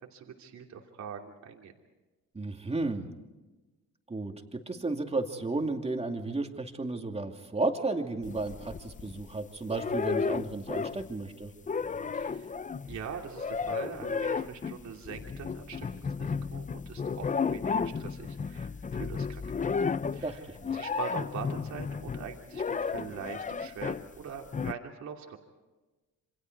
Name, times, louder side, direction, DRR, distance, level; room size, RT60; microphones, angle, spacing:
voice 1, 0.0-1.7 12.1-12.6 12.9-19.7 20.1-20.5 20.7-25.4, right 7 dB, 65° right, 1 dB, 2.9 m, -43 dB
voice 2, 2.3-3.1 4.1-4.3 4.7-11.5 20.2-20.8, right 3 dB, 20° right, 4 dB, 2.6 m, -33 dB
sound 1, 8.2-9.3 9.7-11.2 11.4-24.1 24.5-24.7, left 5 dB, 25° left, 0.6 m, -33 dB
28.0 x 25.0 x 4.7 m, 1.2 s
cardioid pair, 90°, 30 cm